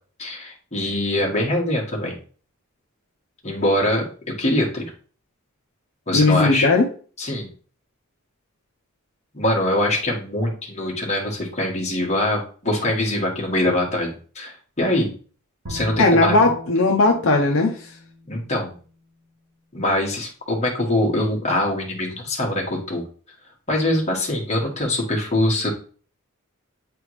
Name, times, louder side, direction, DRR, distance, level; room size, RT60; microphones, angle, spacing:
voice 1, 0.2-2.2 3.4-4.1 4.4-4.9 6.1-6.7 7.2-7.5 9.3-15.1 15.7-16.4 18.3-18.7 19.7-23.0 23.7-25.7, left 1 dB, 30° left, -2 dB, 1.5 m, -23 dB
voice 2, 6.1-6.8 16.0-17.9, left 2 dB, 65° left, 1 dB, 0.8 m, -17 dB
Bowed string instrument, 15.7-18.9, right 1 dB, 80° right, 2.8 m, -38 dB
8.6 x 3.5 x 3.2 m, 0.41 s
head